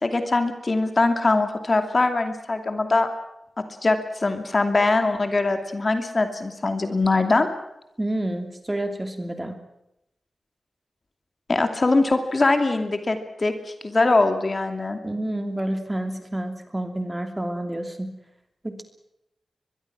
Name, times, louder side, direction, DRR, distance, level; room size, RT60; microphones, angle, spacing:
voice 1, 0.0-3.1 3.6-7.5 11.5-13.5 13.8-15.0, left 3 dB, 35° left, 7 dB, 2.5 m, -22 dB
voice 2, 8.0-9.6 15.0-18.1 18.6-18.8, right 1 dB, 15° right, 6 dB, 2.9 m, -29 dB
23.0 x 22.5 x 6.2 m, 0.83 s
wide cardioid pair, 145°, 0 cm